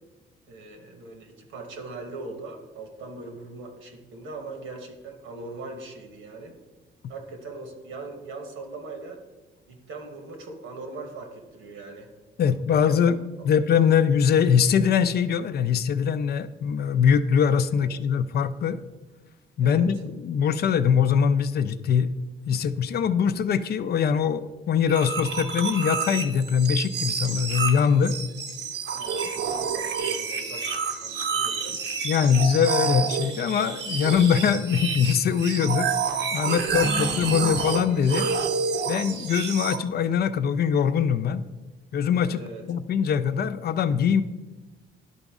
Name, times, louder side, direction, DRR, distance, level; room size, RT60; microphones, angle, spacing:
voice 1, 0.5-6.6 7.1-9.2 9.7-12.1 12.4-13.0 17.7-17.9 19.6-19.9 28.9-30.7 31.0-31.9 34.0-34.2 36.7-36.9 42.3-42.6, right 3 dB, 85° right, 4 dB, 1.3 m, -40 dB
voice 2, 12.4-18.8 19.6-20.0 20.2-22.1 22.5-28.2 32.0-38.3 38.9-41.4 41.9-42.4 42.7-44.2, left 7 dB, 55° left, 12 dB, 0.4 m, -22 dB
sound 1, 24.9-39.8, right 5 dB, 60° right, 0.7 m, -29 dB
11.0 x 4.0 x 3.6 m, 1.2 s
cardioid pair, 90°, 20 cm